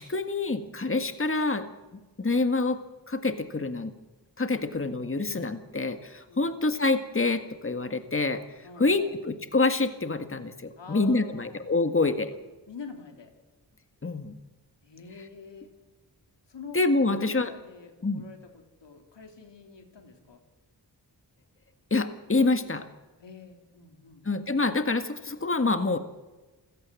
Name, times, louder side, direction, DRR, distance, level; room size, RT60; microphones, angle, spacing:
voice 1, 0.0-1.7 2.2-2.8 3.1-3.9 4.4-8.4 8.8-12.3 14.0-14.3 16.7-17.5 18.0-18.2 21.9-22.9 24.2-26.0, left 3 dB, 30° left, 8 dB, 1.8 m, -26 dB
voice 2, 8.6-9.2 10.8-11.7 12.7-13.3 14.8-15.7 16.5-20.4 23.2-24.3, left 5 dB, 85° left, 4 dB, 3.4 m, -46 dB
27.5 x 16.5 x 7.7 m, 1.2 s
cardioid pair, 50°, 42 cm